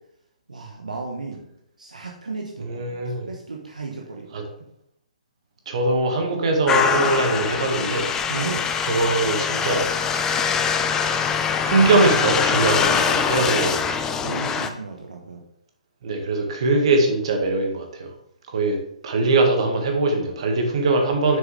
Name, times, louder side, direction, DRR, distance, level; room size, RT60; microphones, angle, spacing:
voice 1, 0.5-1.5 1.8-4.3 8.3-8.6 14.2-15.4, right 4 dB, 75° right, 0 dB, 1.1 m, -34 dB
voice 2, 2.6-3.3 4.3-4.4 5.7-8.1 8.9-9.9 11.6-14.0 16.0-18.1 18.5-18.8 19.0-21.4, right 3 dB, 50° right, 3 dB, 1.6 m, -21 dB
sound 1, 6.7-14.7, left 6 dB, 15° left, 0.4 m, -23 dB
7.2 x 6.7 x 3.3 m, 0.74 s
figure-of-eight pair, 130°, 4 cm